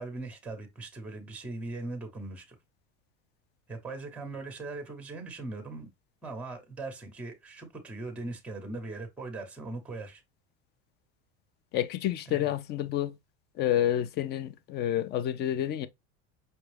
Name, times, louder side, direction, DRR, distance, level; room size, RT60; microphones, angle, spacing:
voice 1, 0.0-2.6 3.7-5.9 6.2-10.2 12.3-12.5, right 2 dB, 5° right, 0.9 m, -40 dB
voice 2, 11.7-13.1 13.6-15.9, left 12 dB, 35° left, 0.4 m, -29 dB
5.3 x 2.3 x 3.3 m
cardioid pair, 145°, 32 cm